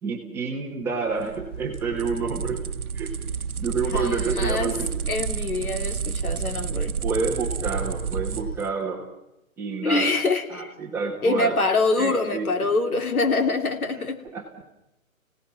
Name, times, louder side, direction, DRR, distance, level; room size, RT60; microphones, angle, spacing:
voice 1, 0.0-2.6 2.9-3.1 3.6-4.9 7.0-9.0 9.6-10.1 10.5-11.6 12.0-12.7 13.9-14.0 14.3-14.4, right 4 dB, 5° right, -2 dB, 1.4 m, -29 dB
sound 1, 1.1-8.7, right 6 dB, 90° right, 1.0 m, -30 dB
voice 2, 3.9-4.7 5.1-6.9 9.8-10.7 11.2-14.2, left 3 dB, 85° left, 6 dB, 3.1 m, -25 dB
29.5 x 18.0 x 5.9 m, 0.89 s
hypercardioid pair, 165°, 42 cm